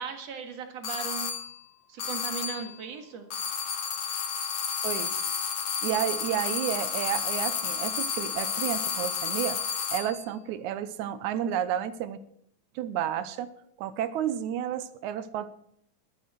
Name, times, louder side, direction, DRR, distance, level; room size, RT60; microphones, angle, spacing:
voice 1, 0.0-1.3 1.9-3.3, right 6 dB, 60° right, 6 dB, 2.6 m, -37 dB
sound 1, 0.8-1.5 2.0-2.7 3.3-10.2, left 7 dB, 55° left, 2.3 m, -31 dB
voice 2, 4.8-5.1 5.8-9.6 9.9-12.2 12.8-13.5 13.8-15.5, right 10 dB, 75° right, 13 dB, 2.1 m, -31 dB
12.5 x 10.0 x 7.5 m, 0.73 s
omnidirectional pair, 3.6 m